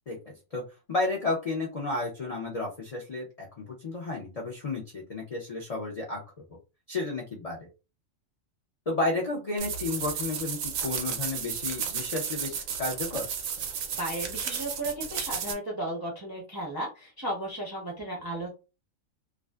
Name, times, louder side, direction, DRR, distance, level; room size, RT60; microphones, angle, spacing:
voice 1, 0.1-0.6 0.9-6.2 6.9-7.7 8.9-13.3, left 2 dB, 55° left, -1 dB, 0.4 m, -32 dB
sound 1, 9.6-15.5, right 7 dB, 90° right, 1.0 m, -33 dB
voice 2, 14.0-18.5, right 1 dB, 30° right, -3 dB, 0.4 m, -34 dB
2.4 x 2.3 x 2.2 m, 0.29 s
omnidirectional pair, 1.4 m